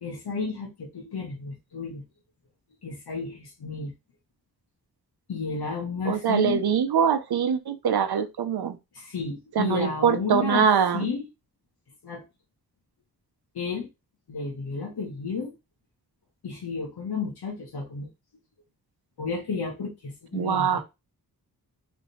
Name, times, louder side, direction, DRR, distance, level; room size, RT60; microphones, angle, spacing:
voice 1, 0.0-2.0 2.8-3.9 5.3-6.6 8.9-10.7 10.9-11.2 12.0-12.2 13.5-13.9 14.3-15.5 16.4-18.1 19.2-20.8, left 5 dB, 90° left, 1.3 m, -32 dB
voice 2, 6.1-8.8 9.5-11.1 20.3-20.8, right 7 dB, 85° right, 0.8 m, -23 dB
3.6 x 3.2 x 4.2 m
wide cardioid pair, 135°, 37 cm